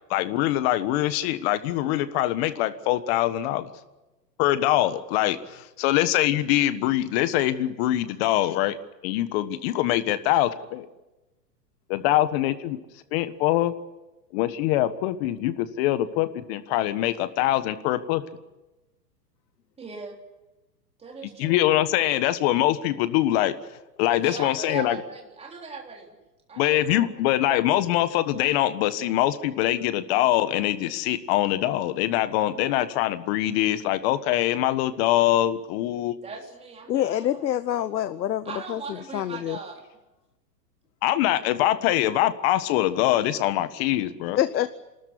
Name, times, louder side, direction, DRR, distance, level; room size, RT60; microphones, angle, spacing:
voice 1, 0.1-3.7 4.4-8.8 9.0-10.9 11.9-12.8 13.1-13.7 14.3-18.2 21.4-23.5 24.0-25.0 26.6-36.1 41.0-44.4, left 14 dB, 40° left, 12 dB, 1.5 m, -23 dB
voice 2, 19.8-20.2 21.0-21.6 24.2-26.2 26.5-27.1 36.2-37.5 38.4-39.8, right 5 dB, 10° right, 1 dB, 3.6 m, -39 dB
voice 3, 36.9-38.8 39.1-39.6 44.4-44.7, left 11 dB, 85° left, 14 dB, 1.0 m, -26 dB
27.5 x 13.5 x 9.9 m, 1.0 s
hypercardioid pair, 145°, 49 cm